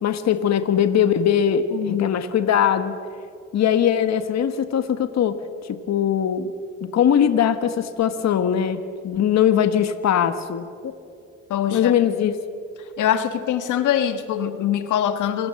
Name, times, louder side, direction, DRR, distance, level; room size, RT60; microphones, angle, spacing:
voice 1, 0.0-2.9 3.5-5.4 5.7-6.5 6.8-10.9 11.7-12.3, left 9 dB, 60° left, 10 dB, 1.4 m, -21 dB
voice 2, 1.7-2.1 11.5-11.9 13.0-15.5, left 10 dB, 80° left, 9 dB, 1.5 m, -23 dB
27.0 x 17.5 x 7.7 m, 2.4 s
cardioid pair, 90°, 30 cm